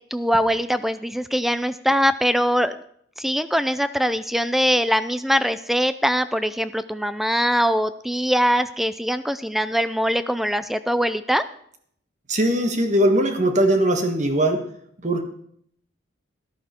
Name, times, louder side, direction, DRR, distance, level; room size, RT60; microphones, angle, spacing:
voice 1, 0.1-2.8 3.2-11.4, equal, ahead, 13 dB, 0.4 m, -22 dB
voice 2, 12.3-14.7 15.0-15.2, right 1 dB, 40° right, 6 dB, 1.6 m, -20 dB
13.0 x 11.5 x 4.4 m, 0.66 s
head